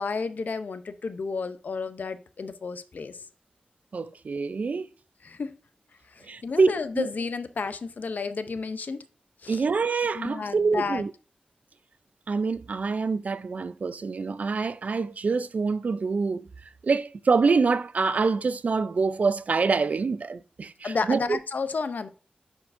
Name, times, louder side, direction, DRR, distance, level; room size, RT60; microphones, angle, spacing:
voice 1, 0.0-3.2 5.2-5.6 6.1-9.0 9.4-9.6 10.1-11.0 20.8-22.1, left 4 dB, 65° left, 0.5 m, -31 dB
voice 2, 3.9-4.9 6.2-7.1 9.5-11.1 12.3-16.5 16.8-21.4, right 4 dB, 55° right, 0.3 m, -26 dB
9.7 x 4.4 x 2.5 m
wide cardioid pair, 120°, 3 cm